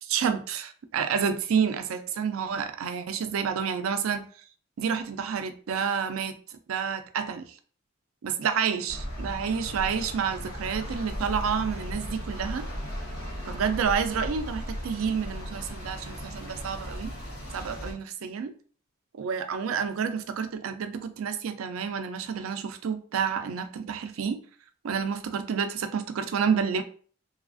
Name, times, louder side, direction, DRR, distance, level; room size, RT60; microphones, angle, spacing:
voice 1, 0.0-4.3 4.8-7.4 8.2-12.7 13.5-17.1 17.5-18.5 19.2-24.4 24.8-26.8, right 6 dB, 75° right, 9 dB, 0.4 m, -29 dB
sound 1, 8.9-17.9, equal, 80° left, 0.9 m, -36 dB
3.0 x 2.4 x 2.4 m, 0.43 s
head